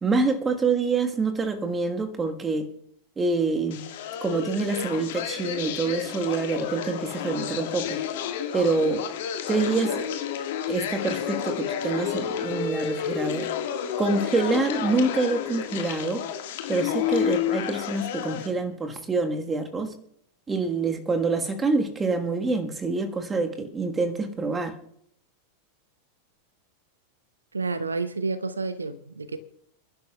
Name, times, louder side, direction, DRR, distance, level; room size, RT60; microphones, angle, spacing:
voice 1, 0.0-2.7 3.2-3.8 4.2-8.0 8.5-9.1 9.5-10.0 10.7-13.5 14.0-16.2 16.7-20.0 20.5-24.7, right 3 dB, 15° right, 1.4 m, -26 dB
sound 1, 3.7-18.5, left 9 dB, 55° left, 1.6 m, -30 dB
voice 2, 27.5-29.4, right 4 dB, 75° right, 0.6 m, -30 dB
28.5 x 11.5 x 2.3 m
figure-of-eight pair, 90°, 0 cm